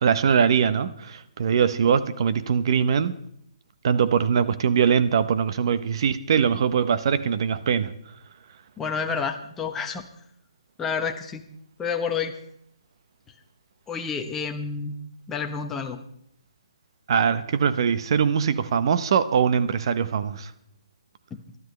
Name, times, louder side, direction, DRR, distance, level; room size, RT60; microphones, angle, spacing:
voice 1, 0.0-3.2 3.8-7.9 17.1-20.5, right 7 dB, 50° right, 0.8 m, -22 dB
voice 2, 8.8-10.0 10.8-11.4 11.8-12.4 13.9-15.0 15.3-16.0 21.3-21.4, left 6 dB, 10° left, 1.0 m, -29 dB
23.5 x 12.5 x 3.2 m
hypercardioid pair, 155°, 3 cm